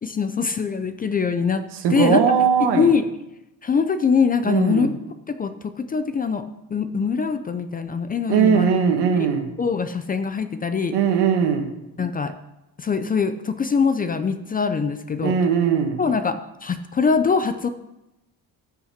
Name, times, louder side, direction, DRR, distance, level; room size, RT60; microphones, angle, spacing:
voice 1, 0.0-1.6 1.9-2.2 2.6-3.0 3.6-4.9 5.3-6.4 6.7-8.7 9.1-9.3 9.6-10.9 12.0-12.3 12.8-15.3 16.0-17.7, left 5 dB, 25° left, 10 dB, 0.4 m, -23 dB
voice 2, 1.8-2.9 4.4-4.9 8.3-9.5 10.9-11.7 15.2-16.0, right 7 dB, 80° right, 5 dB, 1.7 m, -19 dB
13.5 x 5.7 x 5.8 m, 0.94 s
cardioid pair, 160°, 40 cm